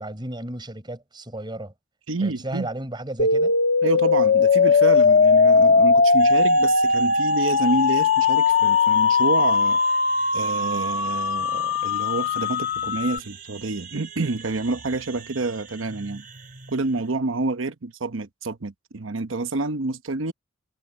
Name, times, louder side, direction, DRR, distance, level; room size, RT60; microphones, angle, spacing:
voice 1, 0.0-1.7 2.2-3.5, right 1 dB, 25° right, 4.2 m, -34 dB
voice 2, 2.1-2.7 3.8-9.8 10.3-16.2 16.7-20.3, right 3 dB, 85° right, 1.0 m, -28 dB
sound 1, 3.2-13.2, left 4 dB, 55° left, 1.2 m, -19 dB
sound 2, 6.2-17.2, right 7 dB, 45° right, 3.2 m, -43 dB
head